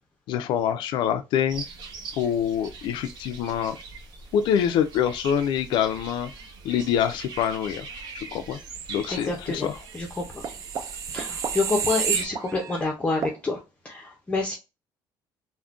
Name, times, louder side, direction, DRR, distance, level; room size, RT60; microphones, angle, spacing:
voice 1, 0.3-1.6 2.1-3.8 4.3-6.3 6.6-7.9 8.1-8.6 8.9-9.8, left 9 dB, 65° left, 0.4 m, -25 dB
sound 1, 1.5-12.3, right 4 dB, 55° right, 0.8 m, -42 dB
voice 2, 9.1-9.7 9.9-10.4 11.1-14.6, left 3 dB, 15° left, 0.5 m, -28 dB
sound 2, 9.9-12.8 13.2-13.4, right 7 dB, 40° right, 0.4 m, -30 dB
3.6 x 2.1 x 2.4 m
cardioid pair, 160°, 9 cm